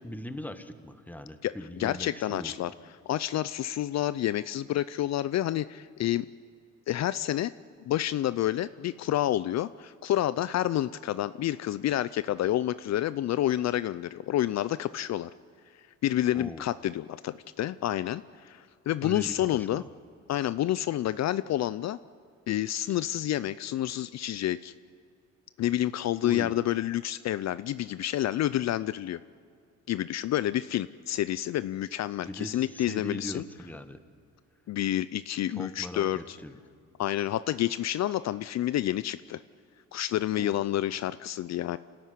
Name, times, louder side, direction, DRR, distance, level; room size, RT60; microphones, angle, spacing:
voice 1, 0.0-2.5 16.3-16.6 19.0-19.9 22.9-23.0 26.2-26.5 32.2-34.0 35.5-36.6 40.4-40.6, left 1 dB, 5° left, 9 dB, 1.4 m, -40 dB
voice 2, 1.4-2.7 3.1-6.3 6.9-7.5 7.9-15.3 16.0-19.8 20.3-22.0 22.5-24.7 25.6-29.2 29.9-33.4 34.7-36.4 37.0-39.4 39.9-41.8, left 13 dB, 60° left, 16 dB, 0.5 m, -29 dB
28.0 x 13.0 x 9.6 m, 2.3 s
cardioid pair, 90°, 30 cm